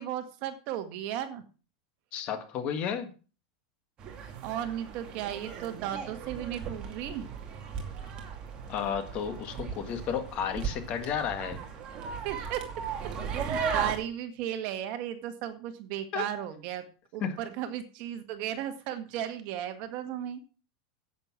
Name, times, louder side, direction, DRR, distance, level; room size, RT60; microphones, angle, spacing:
voice 1, 0.0-1.4 4.4-7.2 12.2-12.7 13.3-16.8 17.1-20.4, right 11 dB, 45° right, 8 dB, 1.8 m, -35 dB
voice 2, 2.1-3.1 8.7-11.6 16.1-16.3 17.2-17.4, left 7 dB, 35° left, 9 dB, 1.7 m, -32 dB
sound 1, 4.0-14.0, right 6 dB, 25° right, 2.5 m, -37 dB
10.5 x 8.3 x 6.0 m, 0.36 s
supercardioid pair, 160°, 4 cm